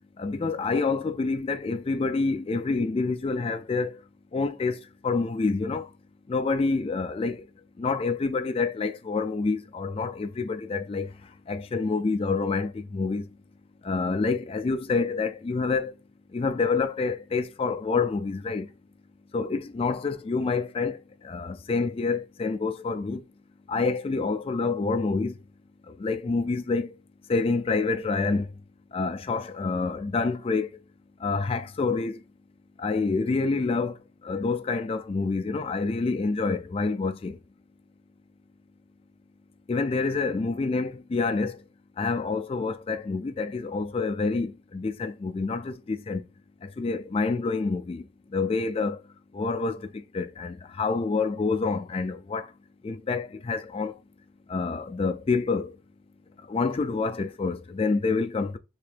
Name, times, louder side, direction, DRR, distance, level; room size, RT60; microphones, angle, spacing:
voice 1, 0.2-4.0 4.3-5.9 6.3-7.4 7.8-11.1 11.5-13.2 13.8-15.9 16.3-18.7 19.3-21.0 21.2-23.2 23.7-25.3 26.0-26.9 27.3-28.5 28.9-30.8 31.2-32.2 32.8-34.0 34.2-37.4 39.7-41.6 42.0-46.2 46.8-48.0 48.3-49.0 49.3-49.9 50.1-52.5 52.8-53.9 54.5-55.7 56.5-58.6, left 4 dB, 30° left, 0.3 m, -27 dB
3.7 x 2.5 x 3.3 m
head